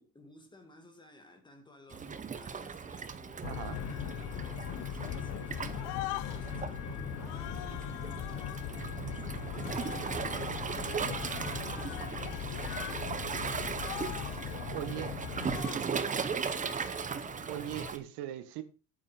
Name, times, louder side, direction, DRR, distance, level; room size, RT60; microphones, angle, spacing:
voice 1, 0.0-12.0 12.4-16.9, left 2 dB, 10° left, 2.2 m, -56 dB
Waves surf, 1.9-18.0, right 6 dB, 20° right, 0.8 m, -38 dB
sound 1, 3.4-15.6, left 9 dB, 40° left, 1.1 m, -39 dB
voice 2, 3.4-3.8 14.7-15.1 17.5-18.6, right 12 dB, 80° right, 1.6 m, -39 dB
sound 2, 4.7-5.4 5.7-6.6 7.2-8.7 9.5-13.1 13.3-13.5 13.7-14.5 15.3-15.9 16.5-17.9, left 18 dB, 70° left, 0.6 m, -44 dB
8.8 x 8.4 x 5.1 m
cardioid pair, 155°, 40 cm